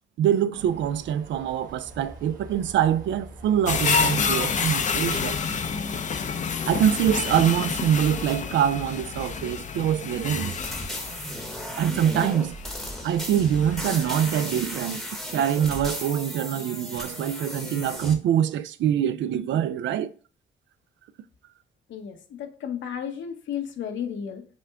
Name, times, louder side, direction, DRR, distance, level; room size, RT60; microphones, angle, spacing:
voice 1, 0.2-5.4 6.7-10.5 11.8-12.5 13.0-15.0 15.3-20.1, right 9 dB, 70° right, 0.4 m, -24 dB
sound 1, 0.5-5.7, right 2 dB, 45° right, 1.5 m, -44 dB
sound 2, 3.7-14.9 15.3-15.4, left 5 dB, 40° left, 0.5 m, -29 dB
sound 3, 10.2-18.1, equal, ahead, 0.9 m, -35 dB
voice 2, 21.9-24.5, left 8 dB, 70° left, 0.9 m, -33 dB
6.0 x 2.2 x 3.5 m
cardioid pair, 90°, 20 cm